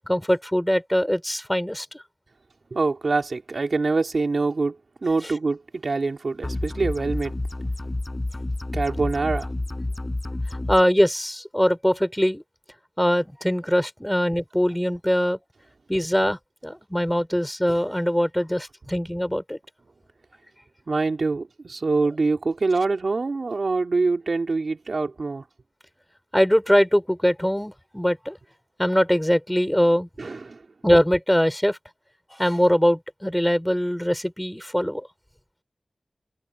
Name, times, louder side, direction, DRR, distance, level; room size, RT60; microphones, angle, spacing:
voice 1, 0.1-1.9 5.2-5.3 10.7-12.4 13.0-15.4 15.9-19.6 26.3-28.4 28.8-30.1 30.8-31.8 32.3-35.1, equal, 5° left, 4.5 m, -22 dB
voice 2, 2.7-4.8 5.0-7.3 8.7-9.5 20.9-25.4 30.2-30.6, right 3 dB, 65° right, 3.6 m, -25 dB
sound 1, 6.4-10.8, left 2 dB, 30° left, 7.2 m, -29 dB
wide cardioid pair, 75°, 0 cm